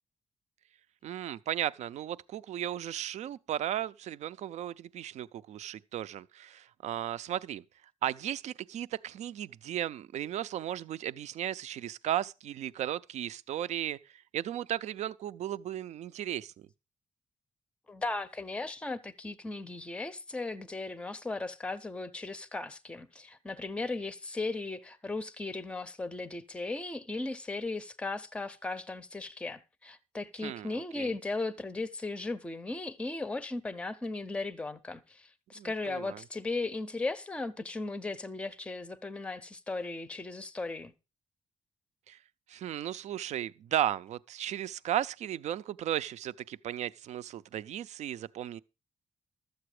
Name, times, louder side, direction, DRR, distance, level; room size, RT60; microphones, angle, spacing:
voice 1, 1.0-7.6 8.0-16.7 30.4-31.1 35.6-36.2 42.1-42.2 42.5-48.6, right 11 dB, 75° right, 0.5 m, -35 dB
voice 2, 17.9-40.9, left 3 dB, 10° left, 0.5 m, -37 dB
13.0 x 7.8 x 4.8 m
wide cardioid pair, 180°, 12 cm